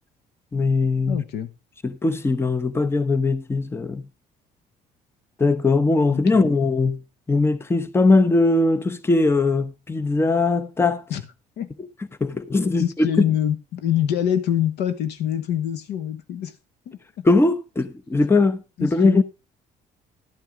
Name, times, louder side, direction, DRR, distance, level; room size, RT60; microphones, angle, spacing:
voice 1, 0.5-1.2 1.8-4.0 5.4-7.0 7.3-11.0 12.2-13.1 17.2-19.2, left 3 dB, 15° left, 0.8 m, -20 dB
voice 2, 1.1-1.5 6.1-6.5 11.1-11.2 11.6-11.7 12.8-16.5 16.9-17.2 18.8-19.2, left 10 dB, 80° left, 1.1 m, -25 dB
11.5 x 9.1 x 3.7 m
cardioid pair, 110°, 17 cm